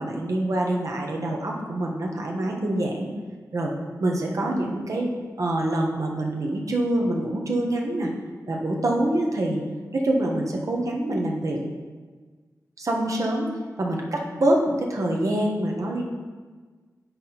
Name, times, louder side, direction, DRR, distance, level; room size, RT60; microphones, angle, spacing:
voice 1, 0.0-3.1 3.5-3.7 4.0-5.1 5.4-8.1 8.5-9.6 9.9-11.6 12.8-13.5 13.8-16.0, right 1 dB, 55° right, 0 dB, 1.2 m, -25 dB
8.5 x 4.3 x 4.2 m, 1.4 s
wide cardioid pair, 75°, 6 cm